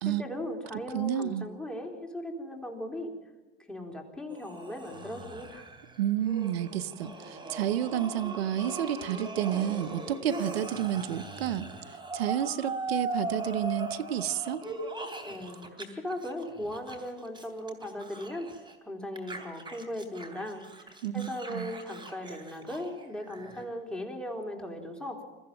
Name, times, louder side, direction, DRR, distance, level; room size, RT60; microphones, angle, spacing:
voice 1, 0.0-3.1 3.6-5.7 15.2-18.5 18.8-25.2, left 1 dB, 5° left, 1 dB, 3.9 m, -38 dB
voice 2, 0.9-1.4 6.0-11.7 12.1-14.6 21.0-21.7, right 10 dB, 85° right, 12 dB, 0.9 m, -30 dB
sound 1, 4.3-15.8 16.1-18.8 19.2-23.6, right 3 dB, 15° right, 3.2 m, -40 dB
22.0 x 14.5 x 9.0 m, 1.2 s
hypercardioid pair, 85°, 30 cm